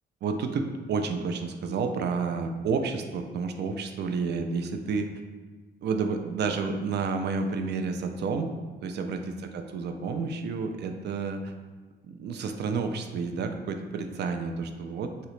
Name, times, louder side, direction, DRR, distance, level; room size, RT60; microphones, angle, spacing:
voice 1, 0.2-5.1 5.8-8.5 8.8-11.5 12.0-15.3, right 4 dB, 60° right, 6 dB, 0.4 m, -30 dB
3.0 x 2.8 x 3.1 m, 1.4 s
cardioid pair, 90°, 20 cm